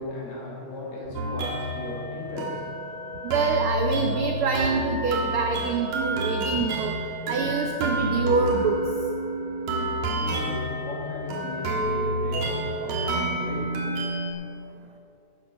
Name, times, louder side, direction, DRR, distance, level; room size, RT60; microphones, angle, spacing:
voice 1, 0.0-2.6 10.1-13.7, left 2 dB, 70° left, -5 dB, 3.9 m, -36 dB
sound 1, 1.1-14.3, right 1 dB, 70° right, 2.5 m, -29 dB
voice 2, 3.2-6.9 7.3-8.8, right 4 dB, 90° right, 3 dB, 1.1 m, -26 dB
12.5 x 8.9 x 5.5 m, 2.7 s
omnidirectional pair, 3.3 m